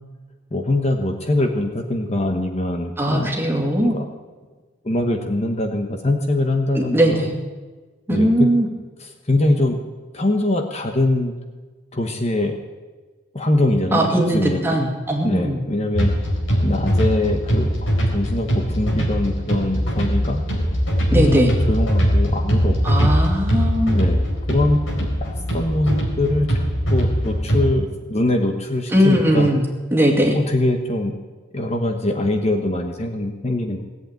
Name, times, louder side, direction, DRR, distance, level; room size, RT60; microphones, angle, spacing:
voice 1, 0.5-3.3 3.8-4.1 4.8-7.2 8.1-8.5 9.0-9.8 10.1-11.3 11.9-12.5 13.3-14.8 15.2-16.1 16.6-17.7 18.1-20.4 21.1-23.1 23.9-26.6 26.9-29.5 30.3-31.1 31.5-33.8, left 1 dB, 35° left, 4 dB, 1.1 m, -22 dB
voice 2, 3.0-4.0 6.7-7.3 8.1-8.7 13.9-15.6 21.1-21.5 22.8-24.0 28.9-29.6 29.9-30.4, equal, 10° right, 0 dB, 2.3 m, -19 dB
sound 1, 15.9-27.7, equal, 85° left, 4.4 m, -21 dB
18.0 x 8.2 x 9.0 m, 1.4 s
head